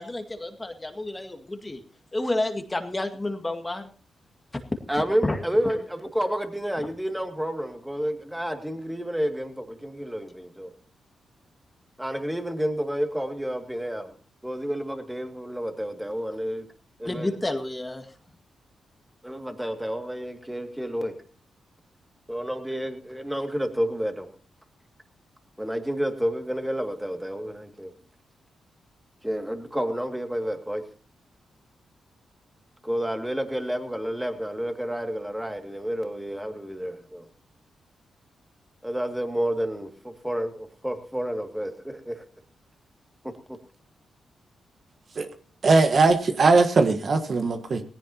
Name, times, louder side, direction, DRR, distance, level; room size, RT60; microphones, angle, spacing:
voice 1, 0.0-1.8 2.1-3.9 5.2-5.4 17.1-18.1, left 2 dB, 20° left, 6 dB, 2.0 m, -30 dB
voice 2, 4.9-10.7 12.0-14.1 14.4-16.7 17.0-17.3 19.2-21.1 22.3-24.3 25.6-27.9 29.2-30.8 32.8-37.2 38.8-42.2 43.2-43.3, equal, 5° right, 5 dB, 2.3 m, -30 dB
voice 3, 45.6-47.8, right 3 dB, 55° right, 7 dB, 1.5 m, -20 dB
17.5 x 16.0 x 2.9 m, 0.41 s
cardioid pair, 60°, 0 cm